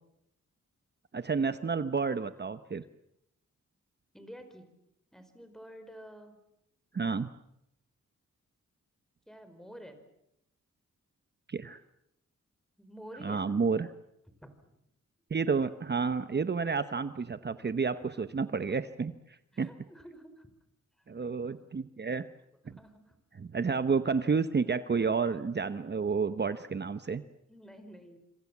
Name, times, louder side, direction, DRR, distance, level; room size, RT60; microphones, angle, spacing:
voice 1, 1.1-2.8 6.9-7.3 11.5-11.8 13.2-13.9 15.3-19.1 19.6-19.7 21.1-22.3 23.4-27.2, right 5 dB, 35° right, 11 dB, 0.9 m, -30 dB
voice 2, 4.1-4.7 5.1-6.3 9.3-10.0 12.8-13.6 14.4-14.5 17.9-18.2 19.5-20.5 21.0-21.1 21.7-21.8 22.1-22.2 22.6-23.2 27.5-28.2, equal, ahead, 8 dB, 4.8 m, -49 dB
26.5 x 26.5 x 7.3 m, 0.80 s
wide cardioid pair, 120°, 29 cm